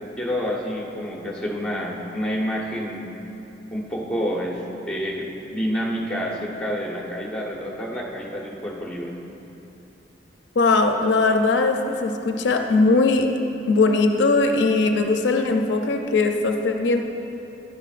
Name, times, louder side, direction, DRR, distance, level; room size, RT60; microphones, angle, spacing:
voice 1, 0.2-3.1 3.7-4.6 4.9-9.1, equal, 5° left, -3 dB, 1.1 m, -28 dB
voice 2, 10.6-13.3 13.7-17.0, left 3 dB, 75° left, 4 dB, 0.5 m, -20 dB
10.5 x 9.8 x 2.5 m, 2.8 s
head